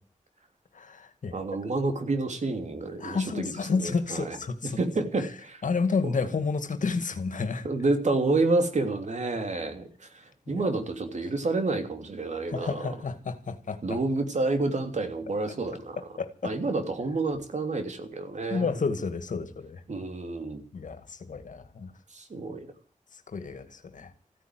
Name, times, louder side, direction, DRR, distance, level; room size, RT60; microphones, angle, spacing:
voice 1, 0.7-1.4 1.6-1.7 3.0-4.8 5.6-7.7 10.5-10.7 12.5-14.0 16.2-16.5 18.5-19.8 20.7-21.9 23.1-24.1, left 4 dB, 75° left, 10 dB, 2.1 m, -31 dB
voice 2, 1.3-3.5 3.8-4.4 4.8-5.6 6.0-6.1 7.6-12.9 13.8-16.0 16.4-18.8 19.9-20.6 22.1-22.7, right 3 dB, 60° right, 7 dB, 3.1 m, -29 dB
15.5 x 9.6 x 9.4 m, 0.40 s
cardioid pair, 60°, 13 cm